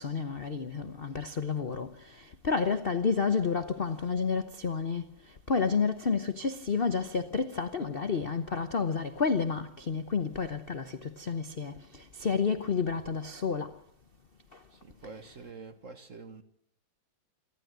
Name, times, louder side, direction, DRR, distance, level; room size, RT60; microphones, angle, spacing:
voice 1, 0.0-13.8 14.5-14.6 15.0-15.3, left 5 dB, 45° left, 0.7 m, -30 dB
voice 2, 14.7-16.4, right 4 dB, 40° right, 1.4 m, -46 dB
28.0 x 12.0 x 9.3 m
omnidirectional pair, 2.3 m